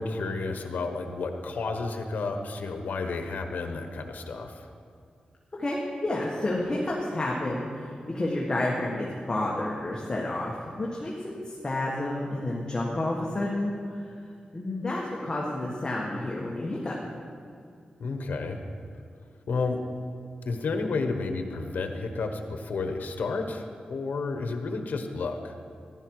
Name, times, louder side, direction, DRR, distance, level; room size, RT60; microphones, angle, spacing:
voice 1, 0.0-4.7 18.0-18.6 19.5-19.8 20.4-25.5, left 3 dB, 80° left, 5 dB, 1.1 m, -31 dB
voice 2, 5.5-14.1 14.5-17.0, left 1 dB, 30° left, -3 dB, 1.6 m, -30 dB
14.5 x 11.5 x 4.8 m, 2.3 s
wide cardioid pair, 115°, 3 cm